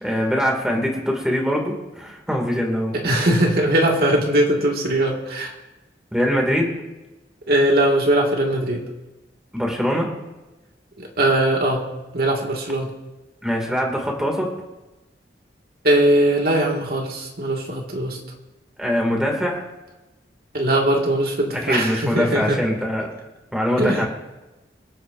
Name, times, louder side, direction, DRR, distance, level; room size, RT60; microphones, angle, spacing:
voice 1, 0.0-3.0 6.1-6.7 9.5-10.1 13.4-14.5 18.8-19.6 21.5-23.1 23.5-24.1, equal, 5° right, 0 dB, 2.3 m, -23 dB
voice 2, 3.0-5.5 7.5-8.8 11.0-11.8 12.1-12.9 15.8-18.2 20.5-22.6 23.8-24.1, right 1 dB, 60° right, -1 dB, 2.0 m, -20 dB
26.5 x 9.2 x 2.6 m, 1.1 s
head